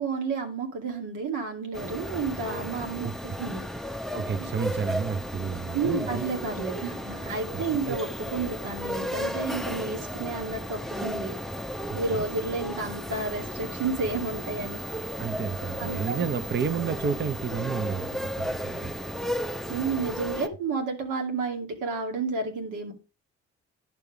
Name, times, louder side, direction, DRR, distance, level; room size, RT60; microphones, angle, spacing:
voice 1, 0.0-3.1 3.4-3.6 4.4-4.5 5.7-11.3 11.9-14.8 15.8-16.2 19.7-22.9, right 4 dB, 85° right, 2.4 m, -31 dB
sound 1, 1.7-20.5, equal, ahead, 0.7 m, -34 dB
voice 2, 3.0-3.4 4.1-6.2 7.5-8.0 11.9-12.3 15.2-18.9, right 6 dB, 35° right, 0.7 m, -31 dB
11.0 x 5.3 x 4.9 m
cardioid pair, 90°, 30 cm